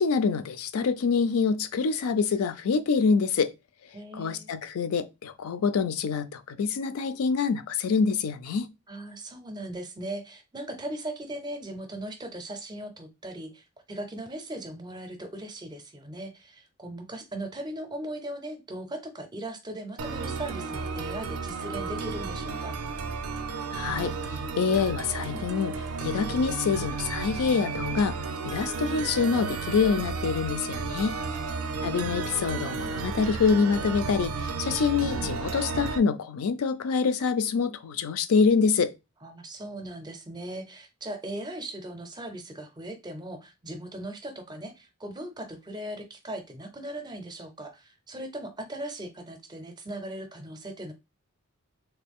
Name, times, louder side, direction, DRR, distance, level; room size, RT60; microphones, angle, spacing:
voice 1, 0.0-3.5 4.1-8.7 23.7-25.7 26.0-28.2 28.4-31.1 31.8-38.9, left 5 dB, 80° left, 0.4 m, -26 dB
voice 2, 3.9-4.5 8.9-22.8 31.1-31.8 39.2-50.9, right 1 dB, 20° right, 0.5 m, -38 dB
sound 1, 20.0-36.0, right 4 dB, 80° right, 0.4 m, -33 dB
3.2 x 2.3 x 3.5 m
head